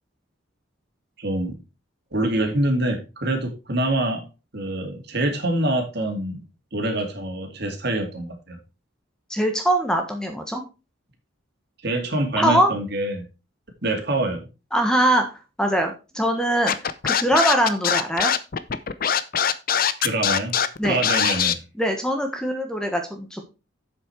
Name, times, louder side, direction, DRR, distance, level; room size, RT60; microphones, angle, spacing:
voice 1, 1.2-1.6 2.1-4.3 4.5-6.4 6.7-8.6 11.8-13.2 13.8-14.5 20.0-20.5 20.9-21.6, right 1 dB, 55° right, 4 dB, 2.4 m, -25 dB
voice 2, 9.3-10.6 12.3-12.7 14.7-15.2 15.6-16.7 17.0-18.3 20.8-21.0 21.8-23.4, equal, 5° left, 4 dB, 1.4 m, -22 dB
Scratching (performance technique), 16.7-21.5, left 8 dB, 45° left, 0.6 m, -22 dB
7.8 x 7.4 x 4.6 m, 0.29 s
head